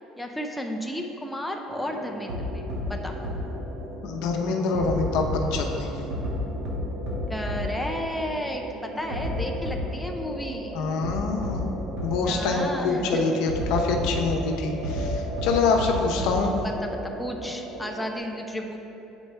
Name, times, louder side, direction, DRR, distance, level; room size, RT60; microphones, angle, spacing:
voice 1, 0.2-3.2 7.3-10.8 12.2-13.3 16.6-18.8, equal, 5° left, 1 dB, 0.4 m, -33 dB
sound 1, 1.7-18.2, right 2 dB, 50° right, 0.8 m, -38 dB
sound 2, 2.3-2.4 2.7-2.8 3.2-3.3 4.7-5.5 6.1-6.3 6.6-6.7 7.1-7.2 7.5-7.6 9.1-9.3 9.6-9.7 11.0-11.1 11.4-11.5 12.0-12.1 13.5-14.2 14.8-15.1 15.4-15.5 15.8-15.9 16.2-16.3, right 1 dB, 75° right, 1.5 m, -31 dB
voice 2, 4.0-5.9 10.7-11.7 12.0-16.5, left 4 dB, 75° left, 2 dB, 0.7 m, -25 dB
8.1 x 4.5 x 3.3 m, 2.9 s
cardioid pair, 145°, 0 cm